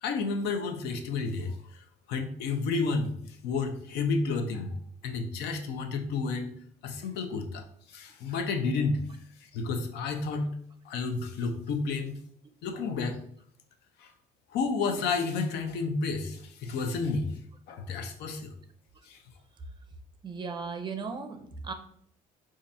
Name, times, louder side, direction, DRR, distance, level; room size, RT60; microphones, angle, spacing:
voice 1, 0.0-1.6 2.1-3.1 3.4-4.8 5.0-6.5 6.8-7.6 7.9-9.0 9.5-10.5 10.9-12.1 12.6-13.2 14.5-17.3 17.7-18.5 19.1-19.2, left 4 dB, 80° left, 6 dB, 0.6 m, -30 dB
voice 2, 20.2-21.7, right 5 dB, 25° right, 7 dB, 0.6 m, -36 dB
5.2 x 2.5 x 2.6 m, 0.63 s
cardioid pair, 110°, 17 cm